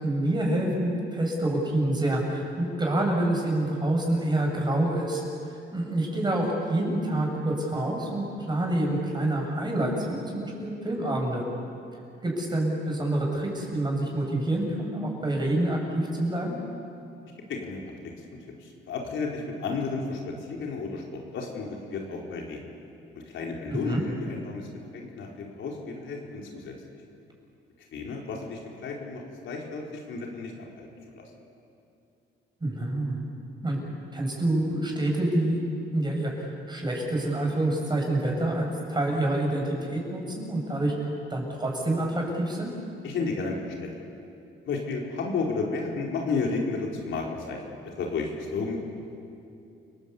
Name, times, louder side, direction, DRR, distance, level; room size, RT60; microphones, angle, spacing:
voice 1, 0.0-11.4 12.2-16.6 23.7-24.0 32.6-33.2 33.6-33.8 34.1-35.6 35.9-40.9 41.3-42.7, right 1 dB, 20° right, 0 dB, 7.3 m, -27 dB
voice 2, 17.5-17.8 18.6-20.2 20.5-22.7 23.1-24.7 24.9-26.7 27.9-31.2 43.0-43.9 44.6-48.8, left 4 dB, 75° left, -1 dB, 4.4 m, -32 dB
29.5 x 19.0 x 8.5 m, 2.6 s
cardioid pair, 90°, 20 cm